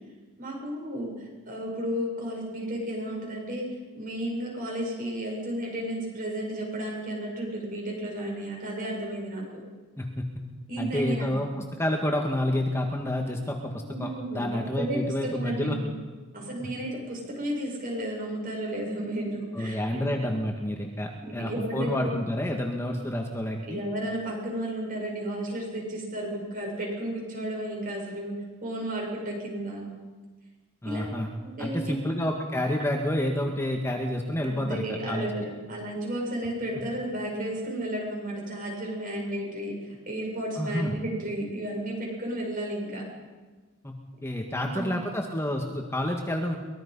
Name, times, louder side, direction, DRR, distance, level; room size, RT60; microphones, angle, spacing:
voice 1, 0.4-9.6 10.7-11.5 13.8-15.9 16.3-20.2 21.2-22.1 23.6-29.9 30.8-31.1 31.4-32.1 34.4-43.0 44.5-45.0, right 1 dB, 40° right, -1 dB, 7.6 m, -33 dB
voice 2, 10.8-15.8 16.6-16.7 19.6-23.8 30.8-31.3 31.6-35.3 40.6-40.9 43.8-43.9 44.2-46.6, left 1 dB, 15° left, 2 dB, 1.8 m, -29 dB
23.5 x 21.5 x 5.6 m, 1.3 s
head